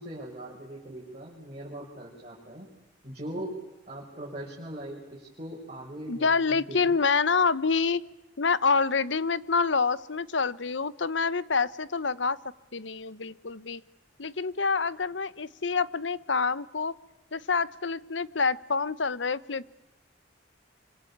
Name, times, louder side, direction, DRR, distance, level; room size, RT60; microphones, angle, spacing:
voice 1, 0.0-2.7 3.0-3.6 3.9-6.9, right 1 dB, 35° right, -4 dB, 6.1 m, -40 dB
voice 2, 6.1-8.0 8.4-12.4 12.7-13.8 14.2-16.9 17.3-19.7, left 4 dB, 75° left, 18 dB, 1.0 m, -27 dB
26.0 x 25.5 x 8.7 m, 0.98 s
head